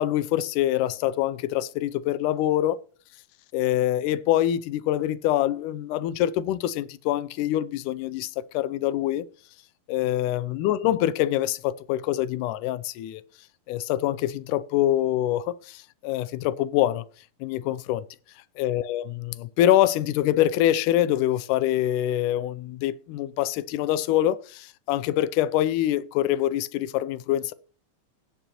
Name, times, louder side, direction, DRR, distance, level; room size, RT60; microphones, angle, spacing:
voice 1, 0.0-2.8 3.5-9.3 9.9-13.2 13.7-17.0 17.4-18.0 18.6-27.5, left 13 dB, 85° left, 2.1 m, -25 dB
17.5 x 6.0 x 2.9 m
omnidirectional pair, 3.6 m